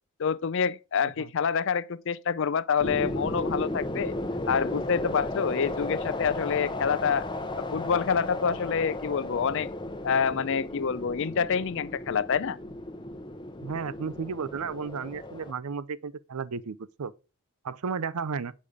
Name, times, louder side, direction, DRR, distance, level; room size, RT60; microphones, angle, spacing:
voice 1, 0.2-4.1 4.5-7.2 7.6-9.7 10.0-12.6, left 6 dB, 55° left, 0.5 m, -27 dB
sound 1, 2.8-15.5, left 1 dB, 20° left, 0.7 m, -34 dB
voice 2, 13.6-17.1 17.6-18.5, right 5 dB, 85° right, 0.6 m, -33 dB
8.3 x 5.3 x 5.0 m
head